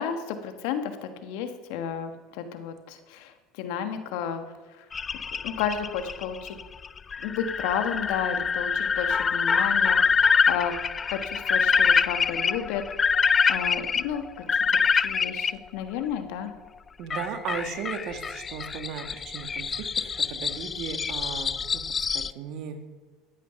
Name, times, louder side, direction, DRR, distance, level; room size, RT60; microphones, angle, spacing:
voice 1, 0.0-3.3 3.6-4.5 5.4-6.6 7.2-10.8 11.1-12.8 13.5-14.2 15.0-16.5, left 8 dB, 70° left, 8 dB, 1.4 m, -32 dB
sound 1, 4.9-15.5 17.1-22.3, left 6 dB, 30° left, 0.3 m, -25 dB
voice 2, 17.0-22.8, right 7 dB, 60° right, 7 dB, 1.5 m, -36 dB
14.5 x 9.3 x 5.8 m, 1.4 s
hypercardioid pair, 80°, 0 cm